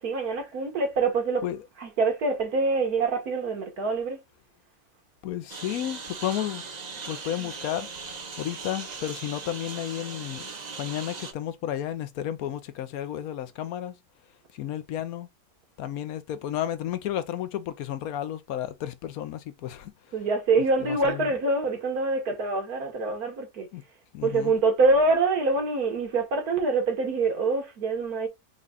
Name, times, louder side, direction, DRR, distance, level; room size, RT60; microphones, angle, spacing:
voice 1, 0.0-1.4 1.8-4.2 7.4-7.5 20.1-23.7 24.2-28.3, right 3 dB, 80° right, 1.8 m, -25 dB
voice 2, 5.2-6.6 7.1-14.0 14.5-15.3 15.8-19.9 20.8-21.3 23.7-23.8 24.1-24.5, left 11 dB, 75° left, 1.1 m, -32 dB
Engine, 5.5-11.3, right 4 dB, 35° right, 0.7 m, -39 dB
4.9 x 2.3 x 3.8 m
omnidirectional pair, 1.6 m